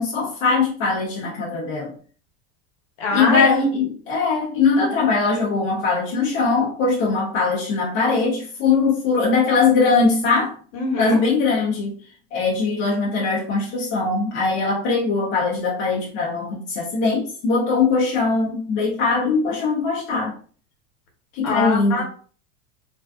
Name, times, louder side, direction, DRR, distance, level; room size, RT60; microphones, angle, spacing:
voice 1, 0.0-1.9 3.1-10.5 11.0-11.9 12.3-20.3 21.3-22.0, left 4 dB, 35° left, -5 dB, 0.6 m, -21 dB
voice 2, 3.0-3.6 10.7-11.2 21.4-22.0, left 3 dB, 50° left, 1 dB, 1.0 m, -23 dB
2.5 x 2.3 x 2.3 m, 0.43 s
supercardioid pair, 165°, 38 cm